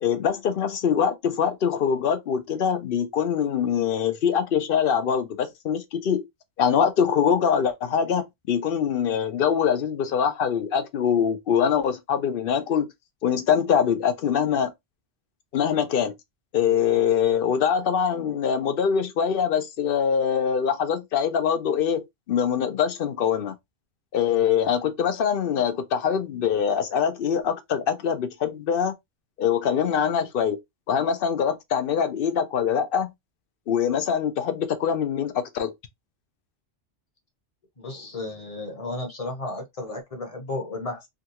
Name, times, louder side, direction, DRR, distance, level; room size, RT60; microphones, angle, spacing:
voice 1, 0.0-6.2 6.6-12.9 13.2-14.7 15.5-16.1 16.5-23.5 24.1-28.9 29.4-30.6 30.9-33.1 33.7-35.7, left 7 dB, 60° left, 0.7 m, -23 dB
voice 2, 37.8-41.1, left 2 dB, 35° left, 0.9 m, -33 dB
3.6 x 2.3 x 2.8 m
omnidirectional pair, 1.2 m